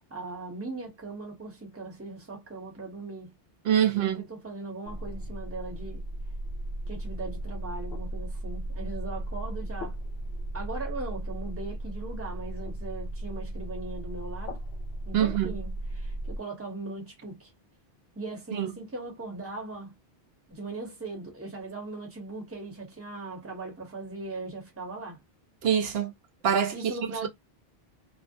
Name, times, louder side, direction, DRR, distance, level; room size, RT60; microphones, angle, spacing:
voice 1, 0.0-3.3 3.8-6.0 6.8-10.0 10.5-14.6 15.1-17.5 18.2-19.9 20.5-25.2 26.7-27.3, right 3 dB, 15° right, 0.8 m, -39 dB
voice 2, 3.6-4.3 15.1-15.6 18.5-18.7 25.6-26.1 26.4-27.3, right 9 dB, 75° right, 0.8 m, -25 dB
sound 1, 4.8-16.4, right 1 dB, 75° left, 0.8 m, -36 dB
2.5 x 2.0 x 2.5 m
omnidirectional pair, 1.0 m